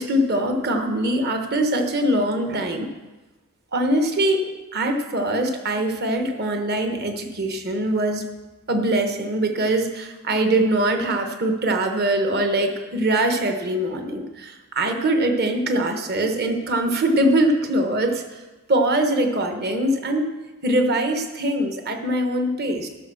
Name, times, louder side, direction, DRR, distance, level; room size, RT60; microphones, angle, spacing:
voice 1, 0.0-2.9 3.7-8.3 8.7-18.2 18.7-20.2 20.6-22.9, right 1 dB, 45° right, 4 dB, 1.2 m, -22 dB
14.0 x 6.2 x 6.3 m, 1.2 s
head